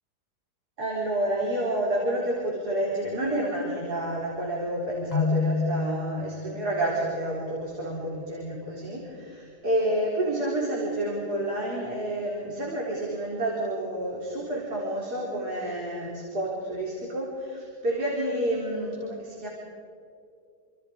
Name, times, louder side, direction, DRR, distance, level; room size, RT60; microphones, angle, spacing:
voice 1, 0.8-19.5, right 1 dB, 70° right, -4 dB, 4.6 m, -29 dB
Keyboard (musical), 5.1-7.0, left 4 dB, 40° left, 0.6 m, -28 dB
29.5 x 26.5 x 5.1 m, 2.4 s
omnidirectional pair, 1.8 m